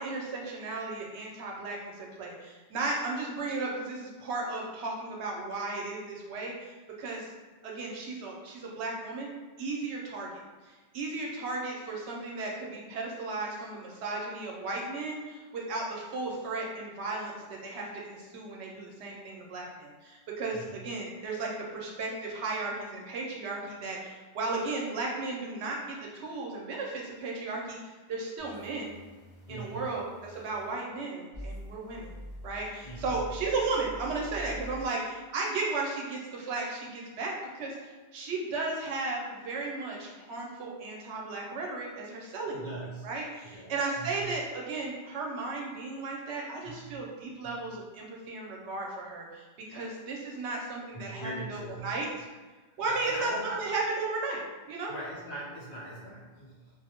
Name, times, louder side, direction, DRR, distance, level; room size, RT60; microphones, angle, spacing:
voice 1, 0.0-6.7 7.0-7.2 7.6-9.3 9.6-10.3 10.9-17.4 17.6-26.0 26.2-27.8 28.1-29.0 29.5-32.1 32.4-37.7 38.1-42.6 43.0-49.3 49.7-52.1 52.8-54.4 54.7-54.9, right 3 dB, 80° right, -2 dB, 0.9 m, -35 dB
voice 2, 20.5-20.8 29.5-29.9 32.8-33.2 42.5-43.1 43.4-44.2 46.6-47.0 47.4-47.6 50.9-51.9 52.8-53.6 54.9-56.7, right 2 dB, 55° left, -8 dB, 1.0 m, -41 dB
sound 1, 28.4-30.7 31.3-34.9, equal, 20° right, 0.8 m, -45 dB
2.4 x 2.0 x 2.8 m, 1.3 s
omnidirectional pair, 1.1 m